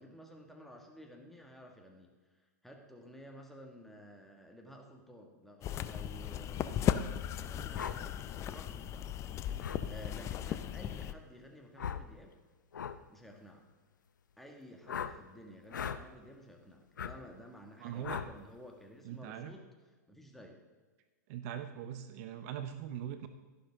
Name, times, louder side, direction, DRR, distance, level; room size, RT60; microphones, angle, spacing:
voice 1, 0.0-2.1 2.6-9.1 9.8-12.4 13.1-13.7 14.4-19.6 20.1-20.6, equal, ahead, 1 dB, 1.9 m, -53 dB
sound 1, 5.6-11.1, left 10 dB, 30° left, 0.6 m, -36 dB
sound 2, 7.7-8.0 9.6-9.8 11.8-12.1 12.7-13.0 14.9-15.1 15.7-16.0 17.0-17.1 18.0-18.3, left 7 dB, 85° left, 0.7 m, -38 dB
voice 2, 17.8-18.2 19.0-19.5 21.3-23.3, right 10 dB, 55° right, 10 dB, 0.8 m, -41 dB
13.0 x 11.5 x 3.7 m, 1.3 s
hypercardioid pair, 115°, 10 cm